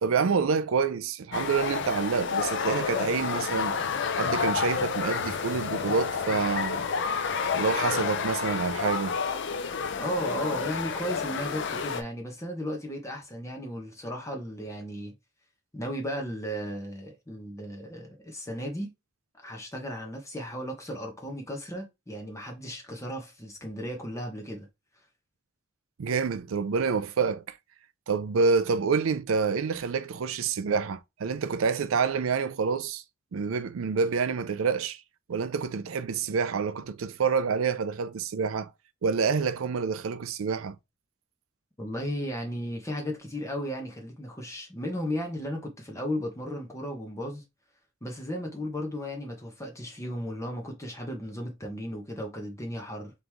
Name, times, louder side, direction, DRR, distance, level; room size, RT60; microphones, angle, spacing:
voice 1, 0.0-3.8 4.1-6.9 7.5-9.2 26.0-27.4 28.1-33.0 33.3-35.0 35.3-38.7 39.0-40.8, right 5 dB, 90° right, 0.4 m, -27 dB
sound 1, 1.3-12.0, left 6 dB, 60° left, 0.5 m, -30 dB
voice 2, 10.0-15.1 15.7-18.9 19.4-24.7 41.8-47.4 48.0-53.1, equal, 15° left, 1.0 m, -35 dB
3.8 x 3.1 x 3.4 m
head